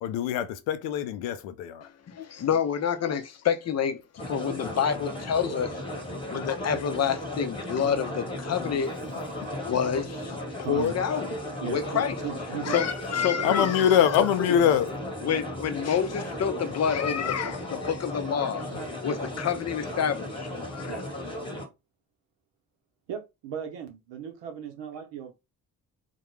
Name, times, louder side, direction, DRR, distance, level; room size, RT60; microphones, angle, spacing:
voice 1, 0.0-1.9 9.3-9.4 9.6-9.8 13.4-14.9, left 9 dB, 80° left, 0.5 m, -24 dB
voice 2, 2.1-5.8 6.3-8.9 9.7-10.4 10.7-11.3 11.6-12.2 12.6-13.8 14.4-14.5 15.2-20.9, left 7 dB, 35° left, 0.6 m, -28 dB
sound 1, 4.2-21.7, left 1 dB, 10° left, 1.1 m, -35 dB
voice 3, 10.6-10.9 11.6-11.8 12.1-12.8 13.1-13.8 15.3-15.4 18.7-19.0 20.8-21.0 23.1-25.3, right 8 dB, 70° right, 0.9 m, -37 dB
2.2 x 2.1 x 3.1 m
hypercardioid pair, 45°, 44 cm